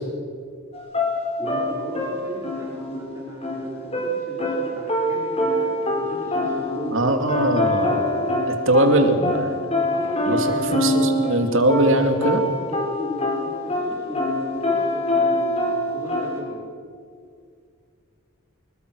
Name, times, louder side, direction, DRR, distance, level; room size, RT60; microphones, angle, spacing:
sound 1, 0.7-7.0 7.3-11.4 11.7-16.4, left 1 dB, 30° left, 4.7 m, -24 dB
voice 1, 1.4-5.7 6.0-7.1 7.4-9.3 9.9-10.7 12.7-16.6, left 1 dB, 15° right, -5 dB, 5.0 m, -35 dB
voice 2, 6.9-8.0 8.7-9.6 10.3-12.4, right 1 dB, 65° right, 5 dB, 2.6 m, -20 dB
26.0 x 22.0 x 6.3 m, 2.2 s
head